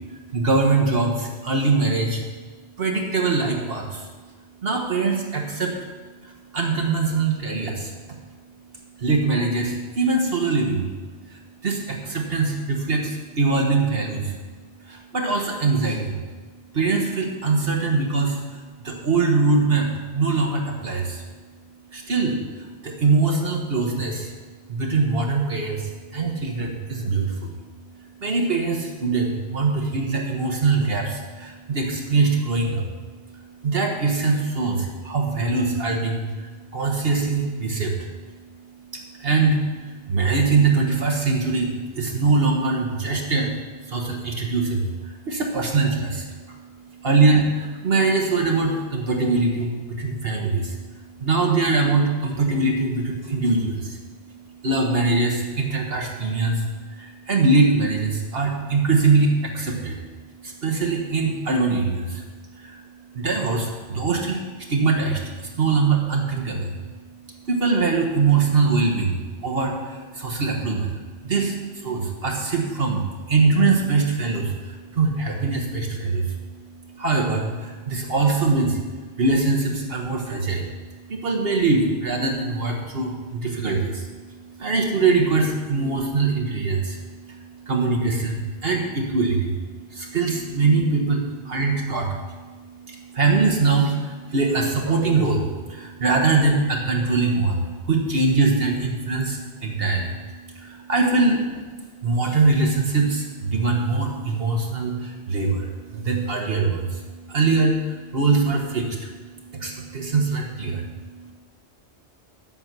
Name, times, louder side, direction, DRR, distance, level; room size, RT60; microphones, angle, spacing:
voice 1, 0.1-2.2 2.8-4.1 4.6-5.7 6.2-8.2 9.0-10.9 11.3-14.3 14.9-16.2 16.7-21.2 21.9-24.3 24.7-27.5 28.2-32.9 33.6-38.0 38.9-43.6 43.8-46.6 47.0-50.8 51.2-54.0 54.6-56.6 56.9-60.0 60.4-62.2 62.6-62.8 63.1-66.8 67.5-73.0 73.3-76.4 77.0-78.8 79.2-80.7 81.1-89.6 89.9-100.2 100.5-101.6 102.0-109.2 109.5-111.3, right 3 dB, 60° right, 1 dB, 1.4 m, -23 dB
9.6 x 8.1 x 6.0 m, 1.5 s
omnidirectional pair, 1.1 m